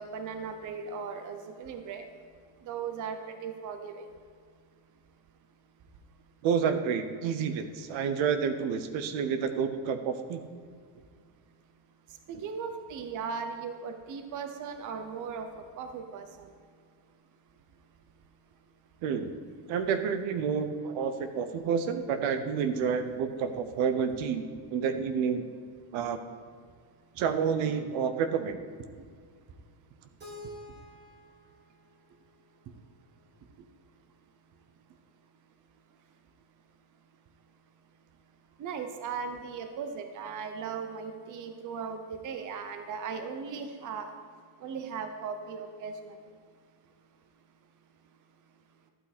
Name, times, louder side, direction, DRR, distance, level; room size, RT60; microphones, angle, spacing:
voice 1, 0.0-2.1 2.7-4.1 12.3-15.5 15.8-16.5 38.6-44.1 44.6-46.1, right 6 dB, 40° right, 7 dB, 0.7 m, -37 dB
voice 2, 6.4-10.4 19.0-19.3 19.7-24.4 24.7-25.5 25.9-26.2 27.2-28.6, right 6 dB, 70° right, 10 dB, 0.9 m, -29 dB
Keyboard (musical), 30.2-33.1, left 1 dB, 20° right, 2.0 m, -49 dB
12.0 x 8.6 x 4.1 m, 2.1 s
cardioid pair, 175°, 49 cm